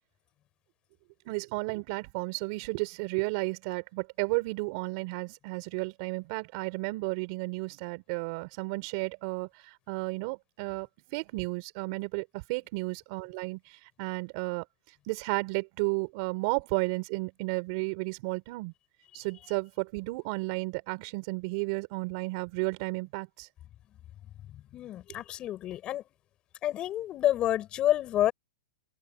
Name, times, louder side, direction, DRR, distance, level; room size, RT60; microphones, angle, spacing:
voice 1, 1.2-14.6 15.1-18.7 19.1-23.5, right 27 dB, 45° right, 4.9 m, -33 dB
voice 2, 24.7-26.0 26.6-28.3, left 12 dB, 25° left, 7.0 m, -28 dB
open air
hypercardioid pair, 140°, 3 cm